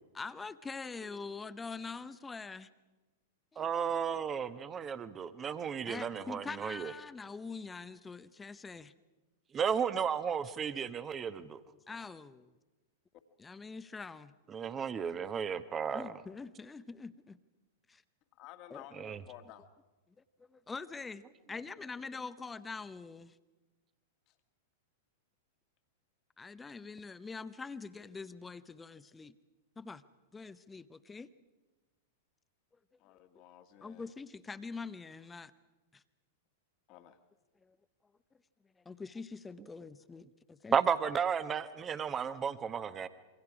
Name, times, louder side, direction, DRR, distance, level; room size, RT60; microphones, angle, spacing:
voice 1, 0.1-2.7 3.5-3.7 5.8-8.9 11.4-11.5 11.9-12.5 13.4-14.3 15.9-17.4 17.9-18.0 18.7-18.9 20.5-21.2 21.5-23.3 26.4-29.3 29.8-30.0 30.3-31.3 33.8-35.5 35.9-36.0 37.6-37.8 38.8-40.8, left 4 dB, 15° left, 0.8 m, -44 dB
voice 2, 3.6-6.9 9.5-11.6 14.5-16.1 18.9-19.2 40.7-43.1, right 7 dB, 25° right, 1.1 m, -33 dB
voice 3, 18.4-19.7 33.0-34.1 36.9-37.2, left 12 dB, 45° left, 1.9 m, -53 dB
27.5 x 23.0 x 4.9 m
figure-of-eight pair, 100°, 0 cm